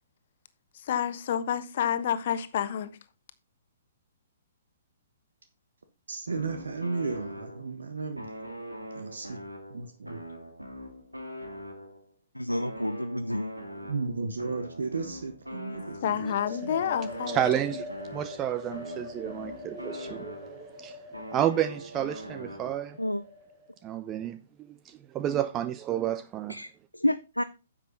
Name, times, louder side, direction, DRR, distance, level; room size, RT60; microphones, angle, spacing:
voice 1, 0.7-2.9 16.0-17.8, left 9 dB, 50° left, 1.2 m, -29 dB
voice 2, 6.1-8.3 8.9-9.4 9.7-10.2 13.8-16.3 16.6-16.8, right 4 dB, 65° right, 1.3 m, -34 dB
sound 1, 6.3-7.8 8.2-12.1 12.5-16.4 16.8-20.8 21.1-23.0, equal, 90° right, 2.1 m, -42 dB
voice 3, 12.3-13.5 23.0-23.2 26.5-27.4, left 1 dB, 90° left, 0.5 m, -29 dB
sound 2, 16.2-23.8, left 1 dB, 40° right, 4.2 m, -43 dB
voice 4, 17.3-17.8 18.1-21.0 21.3-23.0 23.8-26.6, right 11 dB, 20° right, 0.5 m, -31 dB
10.0 x 7.4 x 4.0 m
figure-of-eight pair, 120°, 0 cm